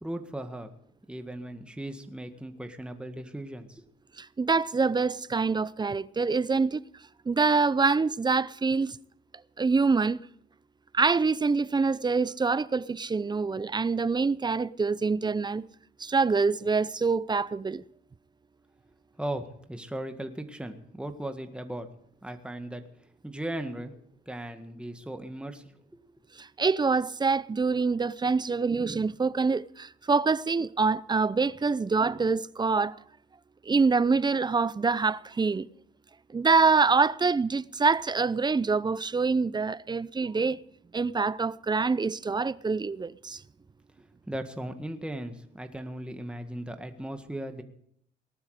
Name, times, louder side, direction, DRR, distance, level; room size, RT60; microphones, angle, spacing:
voice 1, 0.0-0.7 1.1-3.9 19.2-21.9 22.2-22.8 23.2-23.9 24.3-25.6 44.3-47.6, right 1 dB, 5° right, 1.8 m, -37 dB
voice 2, 4.2-6.8 7.3-9.0 9.6-10.2 10.9-15.7 16.0-17.8 26.4-32.9 33.7-35.7 36.3-40.6 40.9-43.4, right 4 dB, 20° right, 0.6 m, -25 dB
19.0 x 12.0 x 5.0 m
cardioid pair, 90°, 20 cm